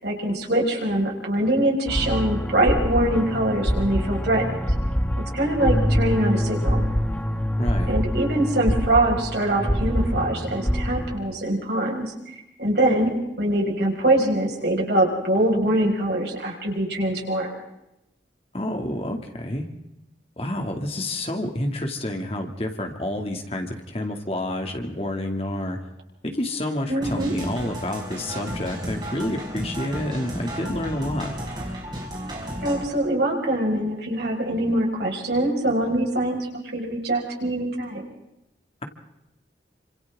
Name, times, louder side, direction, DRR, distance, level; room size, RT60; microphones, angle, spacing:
voice 1, 0.0-4.6 5.3-6.9 7.9-12.1 12.6-17.5 26.9-27.4 32.6-38.0, right 1 dB, 70° right, -1 dB, 5.6 m, -23 dB
sound 1, 1.9-11.2, equal, 10° left, 2.1 m, -25 dB
voice 2, 7.6-7.9 18.5-19.7 20.4-25.8 26.2-31.4, left 1 dB, 35° left, 3 dB, 2.5 m, -29 dB
sound 2, 27.0-32.8, equal, 25° right, 6.1 m, -33 dB
28.5 x 26.5 x 3.7 m, 0.89 s
head